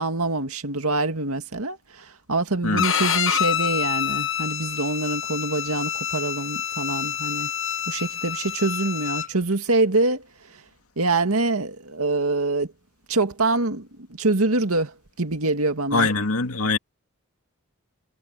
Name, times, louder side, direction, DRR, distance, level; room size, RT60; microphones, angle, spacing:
voice 1, 0.0-7.5 7.9-10.2 11.0-12.7 13.1-13.9 14.2-16.1, right 2 dB, 80° right, 2.1 m, -25 dB
Bowed string instrument, 2.8-9.3, left 9 dB, 60° left, 1.2 m, -27 dB
voice 2, 15.9-16.8, left 3 dB, 85° left, 2.2 m, -22 dB
head